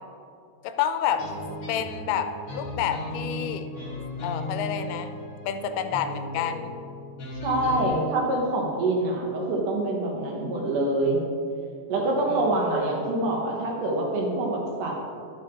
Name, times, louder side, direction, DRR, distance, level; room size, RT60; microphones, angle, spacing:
voice 1, 0.6-1.3 1.7-3.7 4.2-5.2 5.4-6.7 12.3-12.6, left 9 dB, 90° left, 9 dB, 2.5 m, -29 dB
sound 1, 1.2-8.0, left 1 dB, 40° left, 2.1 m, -36 dB
voice 2, 7.4-11.2 11.9-15.0, right 2 dB, 70° right, -1 dB, 2.4 m, -25 dB
11.5 x 7.7 x 3.5 m, 2.4 s
omnidirectional pair, 4.4 m